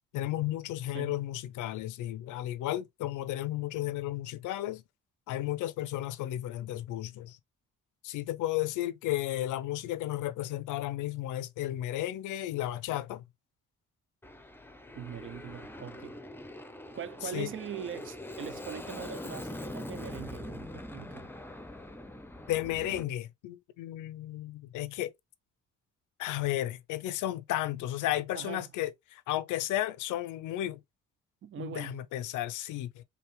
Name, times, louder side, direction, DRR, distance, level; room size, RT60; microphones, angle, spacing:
voice 1, 0.1-4.8 5.3-7.4 8.0-13.2 17.2-17.5 22.5-25.1 26.2-30.8 31.6-33.0, left 14 dB, 85° left, 0.6 m, -33 dB
Aircraft, 14.2-23.0, left 1 dB, 5° left, 0.7 m, -43 dB
voice 2, 14.9-16.2 16.9-21.3 28.3-28.7 31.4-32.0, right 8 dB, 45° right, 0.5 m, -41 dB
4.7 x 2.8 x 3.2 m
cardioid pair, 90°, 30 cm